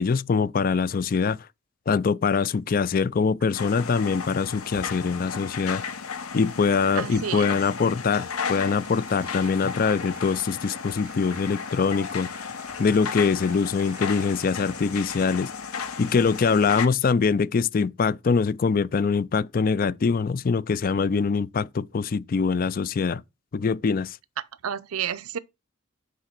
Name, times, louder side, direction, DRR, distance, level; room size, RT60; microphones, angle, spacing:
voice 1, 0.0-1.4 1.9-5.8 6.3-12.5 12.8-15.5 16.0-23.2 23.5-24.2, left 5 dB, 40° left, 0.3 m, -23 dB
sound 1, 3.5-16.9, left 6 dB, 90° left, 1.0 m, -34 dB
voice 2, 7.0-7.6 24.6-25.4, right 8 dB, 85° right, 0.6 m, -30 dB
Applause, 8.0-16.1, right 1 dB, 10° right, 2.1 m, -50 dB
6.5 x 4.9 x 5.9 m
head